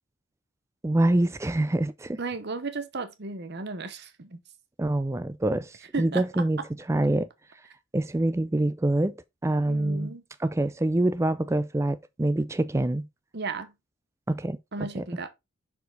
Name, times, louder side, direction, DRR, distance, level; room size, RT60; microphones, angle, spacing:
voice 1, 0.8-2.2 4.8-6.6 6.9-7.3 7.9-9.2 9.4-10.1 10.4-13.0 14.3-14.6 14.9-15.1, right 1 dB, 15° right, 0.4 m, -25 dB
voice 2, 2.2-4.4 5.9-6.2 9.6-10.2 13.3-13.7 14.7-15.3, right 3 dB, 50° right, 0.9 m, -34 dB
6.3 x 4.8 x 3.9 m
head